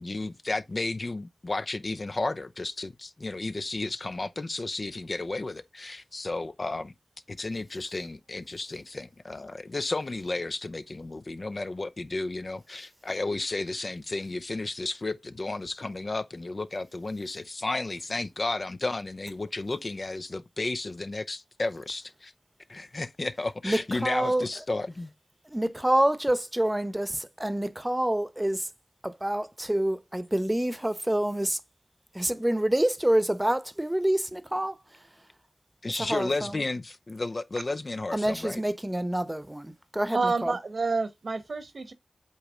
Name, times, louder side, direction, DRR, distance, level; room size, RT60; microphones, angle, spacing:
voice 1, 0.0-6.9 7.3-22.3 22.7-25.1 35.8-38.6, left 2 dB, 50° left, 0.7 m, -33 dB
voice 2, 23.6-24.4 25.5-28.7 29.0-31.6 32.1-34.8 35.9-36.6 38.1-40.6, right 1 dB, 15° right, 0.9 m, -27 dB
voice 3, 40.1-41.9, right 3 dB, 70° right, 1.2 m, -28 dB
8.3 x 3.1 x 5.0 m
cardioid pair, 45°, 0 cm